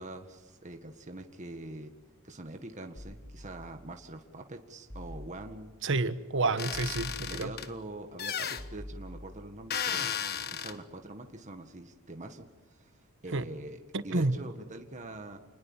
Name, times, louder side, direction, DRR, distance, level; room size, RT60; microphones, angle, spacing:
voice 1, 0.0-1.9 2.2-5.7 6.4-6.7 7.3-10.1 10.5-12.9 13.2-15.4, right 2 dB, 35° right, 5 dB, 1.8 m, -44 dB
sound 1, 3.0-4.0 4.9-5.8 6.7-7.8 8.6-9.6, equal, 30° left, 6.7 m, -46 dB
voice 2, 5.8-7.5 13.3-13.4 13.9-14.3, right 3 dB, 60° right, 11 dB, 1.4 m, -29 dB
sound 2, 6.6-7.7 8.2-8.6 9.7-10.7, left 8 dB, 50° left, 1.4 m, -34 dB
28.5 x 20.5 x 7.4 m, 1.2 s
head